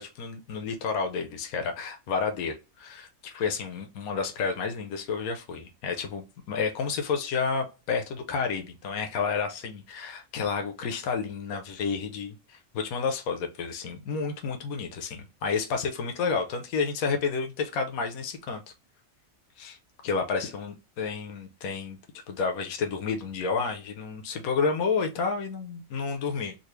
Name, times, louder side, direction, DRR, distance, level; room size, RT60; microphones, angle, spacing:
voice 1, 0.0-18.6 19.6-19.8 20.0-22.0 22.3-26.5, left 5 dB, 85° left, 1.2 m, -30 dB
3.9 x 2.4 x 3.1 m
omnidirectional pair, 1.5 m